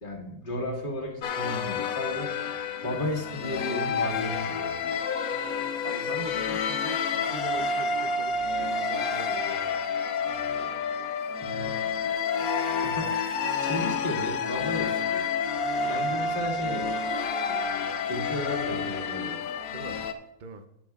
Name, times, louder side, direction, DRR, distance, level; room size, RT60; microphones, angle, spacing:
voice 1, 0.0-2.4 2.8-4.7 11.4-11.9 12.8-13.2 13.6-15.3 15.8-16.9 18.1-19.4, left 1 dB, 35° left, -1 dB, 1.8 m, -34 dB
sound 1, 1.2-20.1, left 5 dB, 90° left, 1.1 m, -29 dB
voice 2, 5.8-9.6 19.7-20.1 20.4-20.6, right 5 dB, 45° right, 8 dB, 0.7 m, -41 dB
12.0 x 10.0 x 2.4 m, 0.82 s
omnidirectional pair, 1.5 m